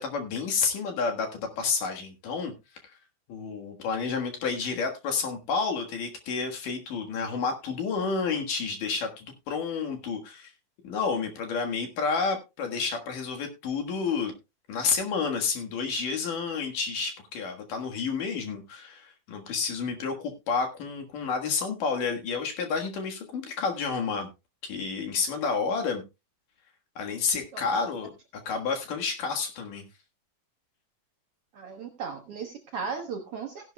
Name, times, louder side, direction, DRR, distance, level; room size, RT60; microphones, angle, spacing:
voice 1, 0.0-2.5 2.8-2.9 3.3-10.5 10.8-14.3 14.7-24.3 24.6-26.0 27.0-28.1 28.5-29.8, left 5 dB, 70° left, 3 dB, 3.0 m, -30 dB
voice 2, 31.5-33.7, right 5 dB, 75° right, 4 dB, 1.3 m, -36 dB
16.0 x 11.0 x 2.2 m, 0.25 s
omnidirectional pair, 4.1 m